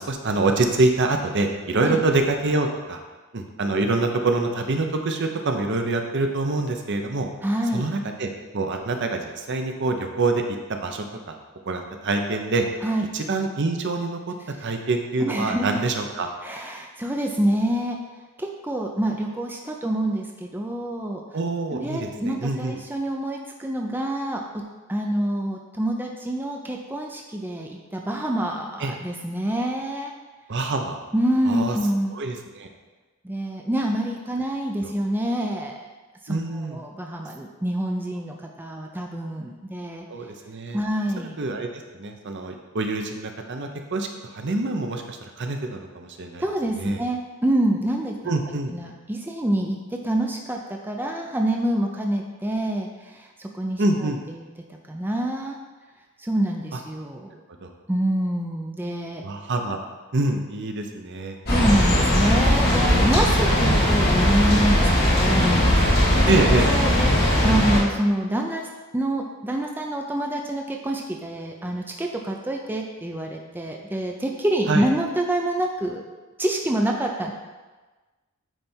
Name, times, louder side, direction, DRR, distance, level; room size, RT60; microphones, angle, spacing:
voice 1, 0.0-3.0 3.3-7.3 7.7-10.4 10.7-11.3 11.7-12.7 13.1-16.3 21.3-22.7 28.8-29.0 30.5-31.0 31.4-31.8 32.1-32.7 34.8-34.9 36.3-36.8 40.1-40.8 41.4-41.7 41.9-46.4 46.8-47.0 48.2-48.7 53.8-54.2 57.6-57.7 59.2-59.8 60.1-61.4 63.5-63.9 66.3-66.7 74.7-74.8, right 2 dB, 55° right, 4 dB, 0.7 m, -25 dB
voice 2, 7.4-7.9 12.8-13.1 15.2-15.8 16.4-18.0 18.4-21.2 21.7-24.6 24.9-30.1 31.1-32.2 33.2-35.9 36.2-40.0 40.7-41.4 46.4-48.3 48.7-54.4 54.9-55.6 56.2-57.4 57.9-59.2 61.5-67.1 67.4-68.7 68.9-76.0 76.4-77.3, right 1 dB, 10° right, 1 dB, 0.5 m, -26 dB
sound 1, 61.4-67.8, left 1 dB, 45° left, 1.9 m, -19 dB
9.0 x 3.3 x 4.4 m, 1.2 s
head